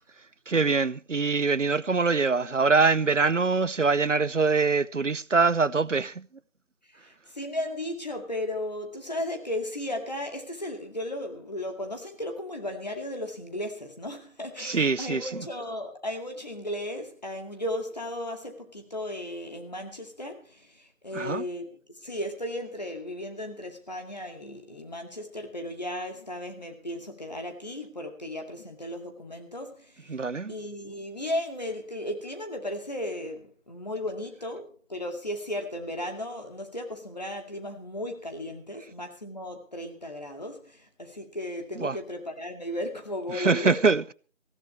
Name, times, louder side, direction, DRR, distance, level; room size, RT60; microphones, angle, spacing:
voice 1, 0.5-6.3 14.6-15.5 21.1-21.4 30.1-30.5 41.8-42.0 43.3-44.1, right 4 dB, 70° right, 0.8 m, -24 dB
voice 2, 6.9-30.1 30.5-43.8, left 1 dB, 30° left, 2.3 m, -35 dB
18.5 x 16.0 x 3.2 m
figure-of-eight pair, 175°, 39 cm